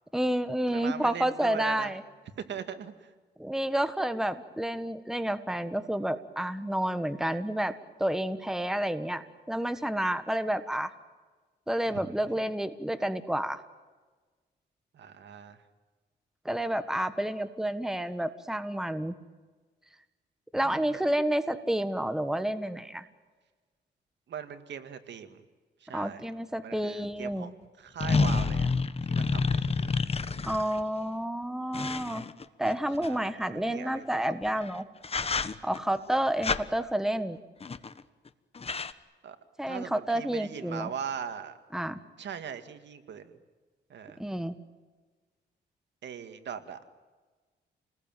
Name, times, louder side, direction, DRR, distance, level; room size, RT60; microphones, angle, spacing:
voice 1, 0.1-2.0 3.4-7.7 8.0-9.2 9.5-10.9 11.7-13.6 16.4-19.1 20.5-23.0 25.9-27.5 30.4-32.2 32.6-34.8 35.6-37.4 39.6-40.9 41.7-42.0 44.2-44.5, right 1 dB, ahead, 10 dB, 1.5 m, -30 dB
voice 2, 0.7-2.0 2.4-3.1 11.9-12.3 14.9-15.6 20.5-21.0 24.3-25.4 25.8-26.2 26.6-28.7 29.1-29.9 33.0-34.6 39.2-39.4 39.7-41.6 42.2-43.3 43.9-44.2 46.0-46.9, right 8 dB, 70° right, 9 dB, 2.2 m, -40 dB
sound 1, 27.0-27.1 28.0-30.8 31.7-33.1 34.5-34.7 35.0-35.8 36.4-36.6 37.6-38.0 38.3-38.4 38.5-38.9, left 4 dB, 30° left, 1.2 m, -29 dB
29.0 x 20.5 x 9.3 m, 1.4 s
cardioid pair, 100°, 19 cm